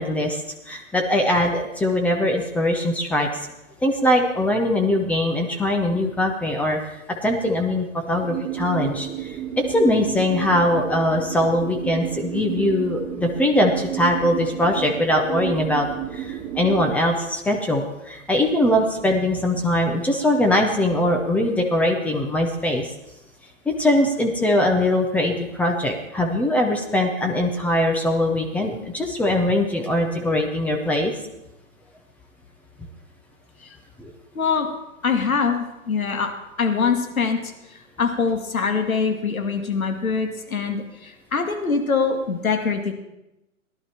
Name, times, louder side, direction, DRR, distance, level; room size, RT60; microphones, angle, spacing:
voice 1, 0.0-3.3 3.8-6.8 7.1-15.9 16.1-22.9 23.7-31.2 34.0-34.1, left 1 dB, 5° left, 1 dB, 0.6 m, -21 dB
sound 1, 8.2-16.9, right 12 dB, 30° right, 2.1 m, -32 dB
voice 2, 34.4-34.7 35.0-36.3 36.6-37.4 37.7-42.9, left 5 dB, 80° left, 5 dB, 2.1 m, -23 dB
17.0 x 11.5 x 4.4 m, 0.93 s
hypercardioid pair, 135°, 41 cm